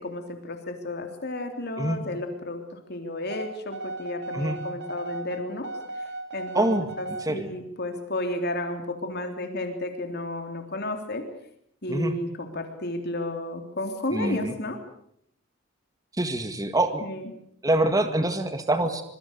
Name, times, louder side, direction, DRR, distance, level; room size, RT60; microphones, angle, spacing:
voice 1, 0.0-5.7 6.0-6.1 6.3-6.7 7.0-11.2 11.8-14.8 17.0-17.3, left 1 dB, 50° left, 5 dB, 3.3 m, -32 dB
sound 1, 3.3-7.3, right 2 dB, 55° right, 3.3 m, -36 dB
voice 2, 6.5-7.5 11.9-12.1 14.1-14.5 16.2-17.0 17.6-19.0, right 1 dB, 15° right, 8 dB, 1.9 m, -25 dB
25.5 x 24.0 x 6.7 m, 0.69 s
head